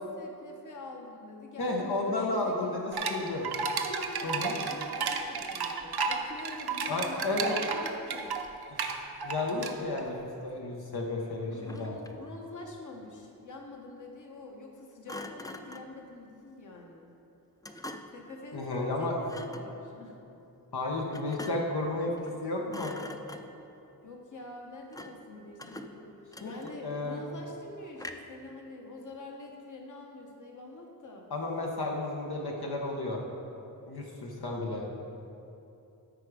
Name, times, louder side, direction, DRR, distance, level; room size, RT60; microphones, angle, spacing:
voice 1, 0.0-3.3 3.6-8.4 11.4-17.1 18.1-20.2 24.0-26.2 26.4-31.2, left 2 dB, 50° left, 0 dB, 1.2 m, -45 dB
voice 2, 1.6-3.4 4.2-4.5 6.9-7.5 8.7-8.8 9.2-12.0 18.5-19.4 20.7-22.1 22.4-23.0 26.4-27.2 31.3-33.2 33.9-34.9, left 2 dB, 80° left, -1 dB, 1.1 m, -32 dB
sound 1, 2.9-10.1, right 5 dB, 80° right, 0.7 m, -33 dB
Thump thud, 11.5-12.3 15.1-16.0 17.6-18.3 19.2-19.7 21.1-21.8 22.2-22.4 22.7-23.7 24.9-25.3 25.6-27.0 28.0-28.4, left 1 dB, 10° left, 0.4 m, -44 dB
13.0 x 5.0 x 4.9 m, 2.9 s
wide cardioid pair, 95°, 38 cm